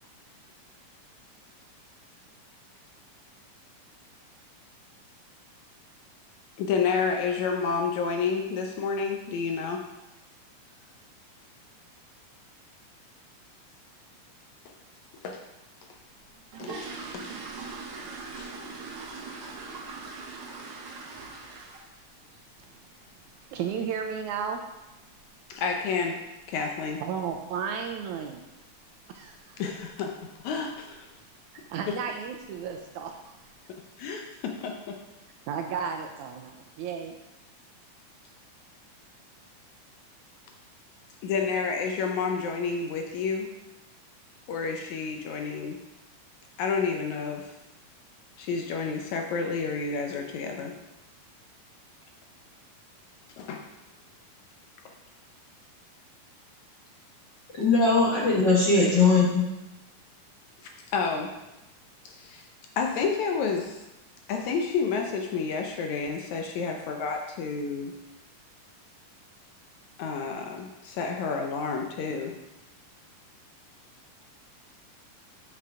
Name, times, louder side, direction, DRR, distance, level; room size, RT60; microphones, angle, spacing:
voice 1, 6.6-9.8 15.2-15.4 16.6-16.8 17.1-17.2 18.4-18.5 25.5-26.2 26.5-27.0 29.6-30.1 30.4-31.1 31.9-32.0 34.0-35.0 41.2-43.5 44.5-45.8 46.6-47.5 48.4-50.7 53.4-53.6 60.9-61.3 62.1-62.4 62.8-63.8 64.3-67.9 70.0-72.4, left 5 dB, 75° left, 3 dB, 1.9 m, -30 dB
sound 1, 16.2-22.1 22.3-22.6 23.0-23.1 23.4-23.6 24.0-24.2 24.4-24.5 25.1-25.2 25.5-25.6 26.1-26.5 26.7-26.8 27.2-27.4 27.8-27.9 28.3-28.4 29.0-29.3 29.6-30.0 30.3-30.4 30.9-31.0 31.7-31.9 32.3-32.7 33.2-33.3, right 4 dB, 55° right, 1.7 m, -41 dB
voice 2, 23.5-24.6 27.0-28.4 29.1-29.6 31.5-33.3 35.5-37.2, right 7 dB, 75° right, 4 dB, 1.9 m, -33 dB
voice 3, 57.5-59.4, left 3 dB, 50° left, -5 dB, 1.3 m, -20 dB
6.9 x 6.7 x 4.9 m, 0.99 s
omnidirectional pair, 3.8 m